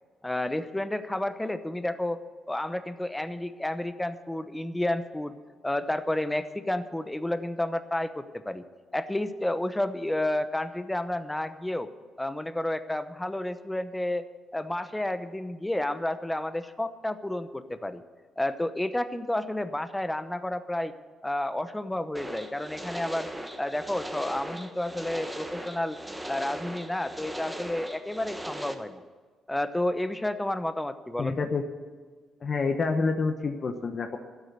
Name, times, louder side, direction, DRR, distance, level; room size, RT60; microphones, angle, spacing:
voice 1, 0.2-2.2 2.5-5.4 5.6-8.6 8.9-11.9 12.2-14.2 14.5-18.0 18.4-20.9 21.2-23.3 23.6-26.0 26.3-29.0 29.5-31.5, left 1 dB, 10° left, 11 dB, 0.9 m, -31 dB
sound 1, 22.1-28.7, right 1 dB, 5° right, 1.4 m, -39 dB
voice 2, 31.2-31.6 32.4-34.2, left 4 dB, 45° left, 5 dB, 1.0 m, -28 dB
12.5 x 8.3 x 9.5 m, 1.5 s
cardioid pair, 90°, 0 cm